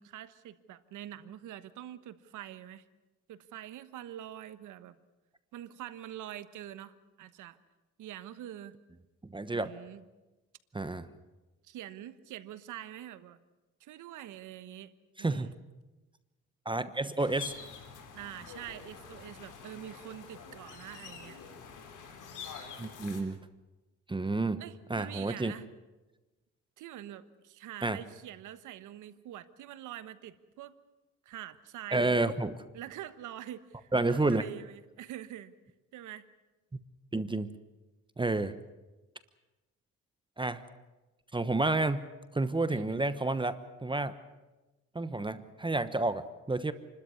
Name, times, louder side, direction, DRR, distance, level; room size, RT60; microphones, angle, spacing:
voice 1, 0.0-2.8 3.3-5.0 5.5-7.6 8.0-8.8 9.5-10.0 11.6-13.4 13.8-14.9 15.2-15.6 18.1-21.4 23.1-23.3 24.6-25.7 26.8-30.8 31.2-32.3 32.7-35.5 35.9-36.3 42.7-43.0, right 12 dB, 85° right, 13 dB, 1.3 m, -45 dB
voice 2, 9.3-9.7 10.7-11.1 15.2-15.5 16.6-17.5 22.8-23.4 24.1-24.6 24.9-25.5 27.8-28.0 31.9-32.5 33.9-34.4 37.1-37.5 38.2-38.6 40.4-40.6 41.3-42.1 42.3-44.1 44.9-46.7, right 2 dB, 15° right, 13 dB, 1.1 m, -30 dB
sound 1, 17.2-23.2, left 6 dB, 85° left, 4.0 m, -47 dB
28.5 x 13.0 x 9.6 m, 1.1 s
cardioid pair, 90°, 30 cm